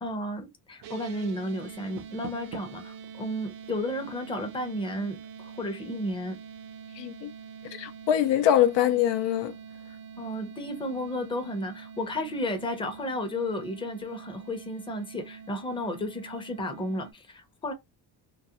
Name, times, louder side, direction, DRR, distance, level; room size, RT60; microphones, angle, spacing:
voice 1, 0.0-6.4 9.9-17.7, left 1 dB, 10° left, 0.6 m, -33 dB
sound 1, 0.8-17.1, right 7 dB, 85° right, 0.7 m, -45 dB
Door, 1.7-2.9, right 5 dB, 45° right, 0.5 m, -43 dB
voice 2, 7.0-7.3 7.7-9.5, left 11 dB, 80° left, 0.5 m, -23 dB
2.4 x 2.1 x 2.8 m
cardioid pair, 125°, 42 cm